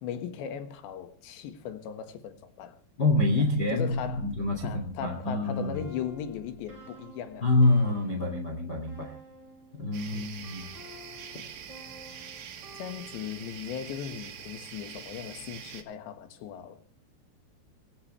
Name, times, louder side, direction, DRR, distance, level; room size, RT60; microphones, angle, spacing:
voice 1, 0.0-2.8 3.7-4.3 4.6-7.5 10.1-10.5 12.8-16.8, left 8 dB, 80° left, 3.8 m, -38 dB
voice 2, 3.0-5.8 7.4-9.1 9.8-10.7, left 2 dB, 30° left, 2.3 m, -26 dB
sound 1, 3.9-9.8 10.4-13.6, equal, 35° right, 8.7 m, -50 dB
sound 2, 9.9-15.8, right 8 dB, 75° right, 4.4 m, -44 dB
26.5 x 14.5 x 3.3 m
omnidirectional pair, 5.1 m